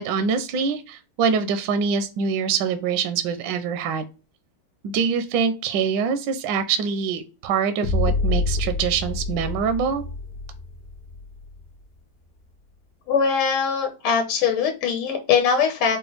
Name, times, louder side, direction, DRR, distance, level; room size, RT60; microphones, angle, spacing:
voice 1, 0.0-4.0 4.8-10.0, right 6 dB, 75° right, 10 dB, 1.1 m, -24 dB
sound 1, 7.8-11.8, left 3 dB, 60° left, 1.2 m, -27 dB
voice 2, 13.1-16.0, left 6 dB, 85° left, 4 dB, 1.6 m, -21 dB
4.9 x 2.3 x 3.1 m, 0.32 s
omnidirectional pair, 2.3 m